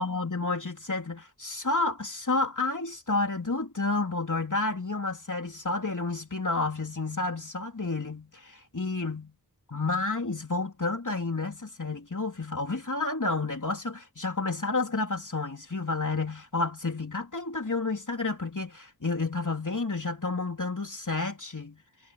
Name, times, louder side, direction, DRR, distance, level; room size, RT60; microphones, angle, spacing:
voice 1, 0.0-9.3 9.7-21.8, left 3 dB, 55° left, 3.8 m, -30 dB
wide cardioid pair, 45°, 36 cm